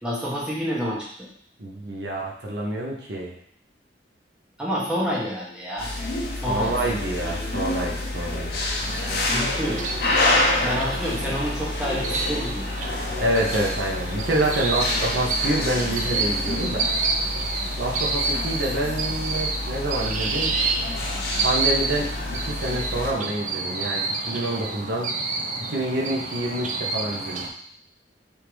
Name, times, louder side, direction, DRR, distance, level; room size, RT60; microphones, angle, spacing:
voice 1, 0.0-1.3 4.6-5.9 6.4-6.9 9.3-9.8 10.6-12.7, equal, 5° right, -7 dB, 1.1 m, -28 dB
voice 2, 1.6-3.3 6.5-8.6 13.2-16.9 17.8-20.5 21.4-22.1 22.4-25.1 25.7-27.5, right 1 dB, 75° right, -3 dB, 1.0 m, -27 dB
sound 1, 5.8-23.1, left 2 dB, 60° left, 0.8 m, -28 dB
sound 2, 8.8-27.5, right 3 dB, 45° right, 0.5 m, -29 dB
3.6 x 2.8 x 4.6 m, 0.63 s
head